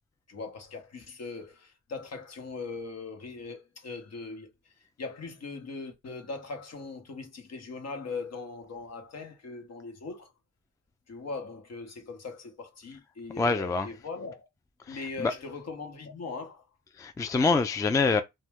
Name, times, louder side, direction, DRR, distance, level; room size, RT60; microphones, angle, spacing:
voice 1, 0.3-4.5 5.0-10.3 11.1-14.5 14.9-16.6, left 4 dB, 55° left, 1.0 m, -40 dB
voice 2, 13.4-13.9 14.9-15.3 17.0-18.2, left 4 dB, 10° left, 0.3 m, -25 dB
2.9 x 2.2 x 3.4 m
cardioid pair, 80°, 31 cm